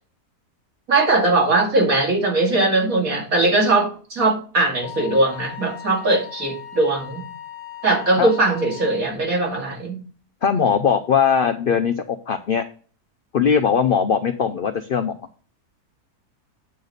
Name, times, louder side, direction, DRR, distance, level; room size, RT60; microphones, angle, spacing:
voice 1, 0.9-7.2 7.8-10.0, right 2 dB, 60° right, 2.7 m, -20 dB
Wind instrument woodwind instrument, 4.8-9.0, left 12 dB, 85° right, 5.5 m, -38 dB
voice 2, 10.4-12.6 13.3-15.1, left 7 dB, 65° left, 0.5 m, -20 dB
8.7 x 4.0 x 6.5 m
omnidirectional pair, 1.7 m